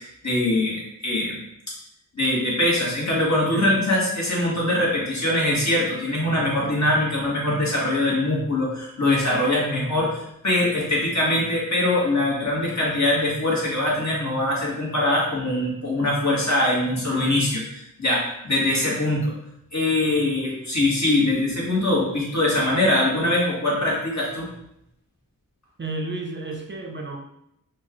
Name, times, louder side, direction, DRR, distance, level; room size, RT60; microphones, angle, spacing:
voice 1, 0.0-1.4 2.1-19.3 19.7-24.5, left 1 dB, 55° left, -4 dB, 1.3 m, -22 dB
voice 2, 3.5-3.8 25.8-27.2, right 2 dB, 35° right, 2 dB, 0.5 m, -31 dB
4.4 x 2.2 x 3.0 m, 0.78 s
wide cardioid pair, 50°, 33 cm